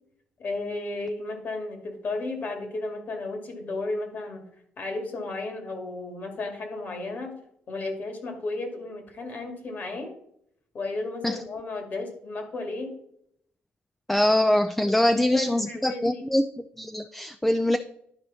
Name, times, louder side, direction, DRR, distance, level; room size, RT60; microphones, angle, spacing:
voice 1, 0.4-4.4 4.8-7.3 7.7-10.1 10.7-12.9 14.8-16.2, left 2 dB, 50° left, 4 dB, 2.1 m, -34 dB
voice 2, 14.1-16.4 16.8-17.8, left 1 dB, 5° left, 9 dB, 0.4 m, -23 dB
11.0 x 4.7 x 4.1 m, 0.72 s
cardioid pair, 100°, 4 cm